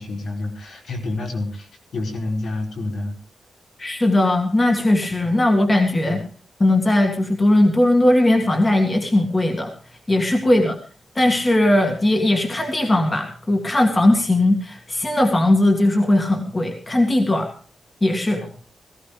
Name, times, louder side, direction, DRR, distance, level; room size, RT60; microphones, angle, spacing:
voice 1, 0.0-3.2 5.2-5.4 6.0-6.2 10.4-10.6 18.4-18.5, left 2 dB, 70° left, 1 dB, 4.7 m, -29 dB
voice 2, 3.8-6.2 6.6-9.7 10.1-10.8 11.2-17.5 18.0-18.4, left 1 dB, 20° left, 3 dB, 2.0 m, -18 dB
17.5 x 16.5 x 3.3 m, 0.40 s
wide cardioid pair, 180°, 0 cm